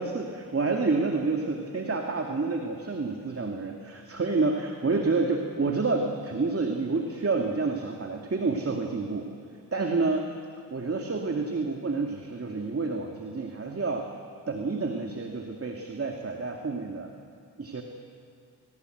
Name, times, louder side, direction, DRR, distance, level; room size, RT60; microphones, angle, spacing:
voice 1, 0.0-9.3 9.7-10.3 10.7-14.1 14.5-17.1 17.6-17.8, right 3 dB, 35° right, 2 dB, 2.4 m, -29 dB
28.0 x 19.0 x 8.0 m, 2.3 s
cardioid pair, 60°, 41 cm